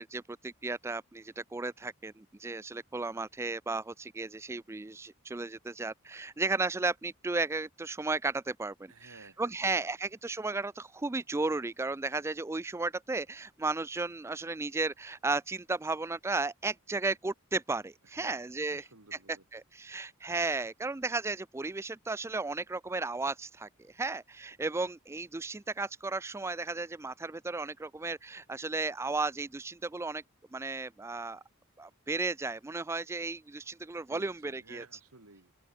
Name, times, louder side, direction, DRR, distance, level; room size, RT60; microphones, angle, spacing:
voice 1, 0.0-9.1 9.4-18.8 19.5-30.2 30.5-31.4 31.8-34.8, right 3 dB, 10° right, 0.3 m, -34 dB
voice 2, 8.9-9.9 18.0-19.5 34.1-35.5, right 3 dB, 75° right, 2.8 m, -55 dB
open air
head